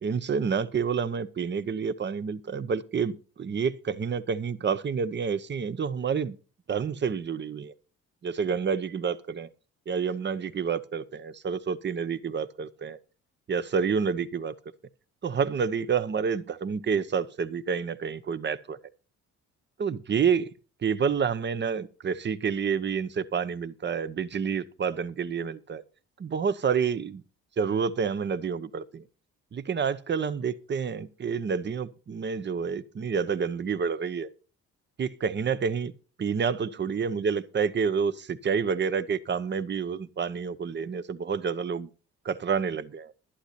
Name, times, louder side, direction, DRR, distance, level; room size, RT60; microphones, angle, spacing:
voice 1, 0.0-3.1 3.4-6.4 6.7-7.7 8.2-9.5 9.9-13.0 13.5-14.5 15.2-18.8 19.8-20.5 20.8-25.8 26.2-27.2 27.6-29.0 29.5-34.3 35.0-35.9 36.2-41.9 42.2-43.1, right 6 dB, 35° right, 0.9 m, -28 dB
11.5 x 11.5 x 4.2 m
cardioid pair, 90°, 30 cm